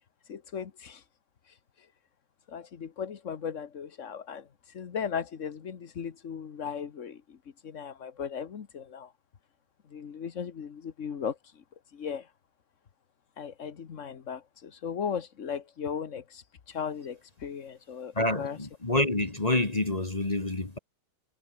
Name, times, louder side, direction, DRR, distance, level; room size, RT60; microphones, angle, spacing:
voice 1, 0.2-1.0 1.4-1.9 2.5-7.4 7.6-9.1 9.9-11.6 11.9-12.3 13.4-18.6, left 7 dB, 50° left, 1.5 m, -37 dB
voice 2, 18.2-20.8, left 2 dB, 20° left, 1.8 m, -27 dB
omnidirectional pair, 1.9 m